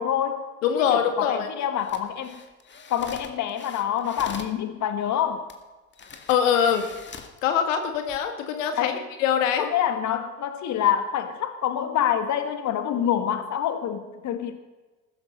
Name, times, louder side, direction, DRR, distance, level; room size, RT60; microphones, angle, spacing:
voice 1, 0.0-0.5 0.8-2.4 2.9-5.5 8.8-9.0 9.6-14.5, left 9 dB, 45° left, 8 dB, 1.9 m, -26 dB
voice 2, 0.6-1.5 6.3-6.9 7.4-8.9 9.2-9.7, left 8 dB, 75° left, 6 dB, 2.0 m, -23 dB
sound 1, 1.8-4.6 5.5-5.6 5.9-7.4 7.9-8.2, left 5 dB, 30° left, 2.1 m, -43 dB
15.5 x 13.0 x 5.4 m, 1.2 s
hypercardioid pair, 75°, 39 cm